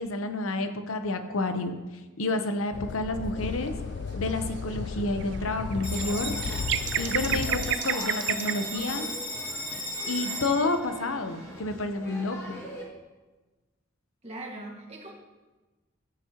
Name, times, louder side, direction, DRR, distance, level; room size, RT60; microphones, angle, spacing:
voice 1, 0.0-1.8 2.2-3.7 4.2-6.4 7.0-9.1 10.1-12.7, left 2 dB, 85° left, 7 dB, 0.9 m, -30 dB
sound 1, 2.7-7.8, left 5 dB, 55° left, 0.3 m, -34 dB
sound 2, 3.4-3.8 4.1-8.9, right 11 dB, 55° right, 0.4 m, -33 dB
Bell, 5.8-12.8, equal, 15° left, 2.1 m, -36 dB
voice 2, 14.2-15.1, right 2 dB, 30° right, -2 dB, 1.9 m, -40 dB
14.0 x 9.2 x 3.0 m, 1.2 s
head